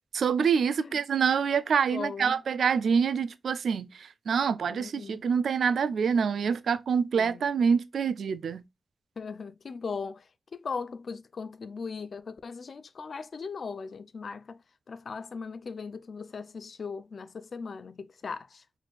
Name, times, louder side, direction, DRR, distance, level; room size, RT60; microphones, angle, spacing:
voice 1, 0.1-3.9 4.3-8.6, right 6 dB, 85° right, 0.3 m, -26 dB
voice 2, 1.9-2.4 4.7-5.2 7.1-7.4 9.2-10.2 10.5-14.6 14.9-18.6, left 5 dB, 50° left, 0.3 m, -38 dB
4.2 x 3.1 x 2.3 m
wide cardioid pair, 170°, 0 cm